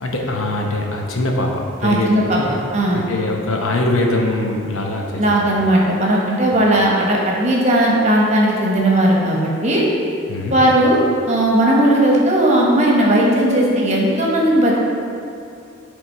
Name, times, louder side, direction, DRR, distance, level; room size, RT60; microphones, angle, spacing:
voice 1, 0.0-2.6 2.9-5.5 10.3-10.6, left 2 dB, 80° left, 0 dB, 0.9 m, -22 dB
voice 2, 1.8-2.4 2.7-3.0 5.2-9.8 10.5-11.0 11.3-14.8, right 1 dB, 35° right, -3 dB, 1.0 m, -16 dB
8.7 x 3.5 x 4.5 m, 2.6 s
head